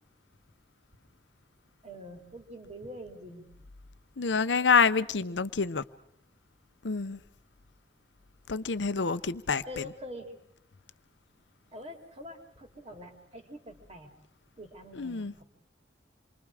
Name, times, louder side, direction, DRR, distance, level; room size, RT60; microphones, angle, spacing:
voice 1, 1.8-3.5 9.6-10.2 11.7-14.1 14.6-15.4, equal, 35° right, 3.3 m, -45 dB
voice 2, 4.2-5.8 6.8-7.2 8.5-9.6 15.0-15.3, left 5 dB, 90° left, 0.8 m, -27 dB
27.5 x 24.0 x 4.9 m
head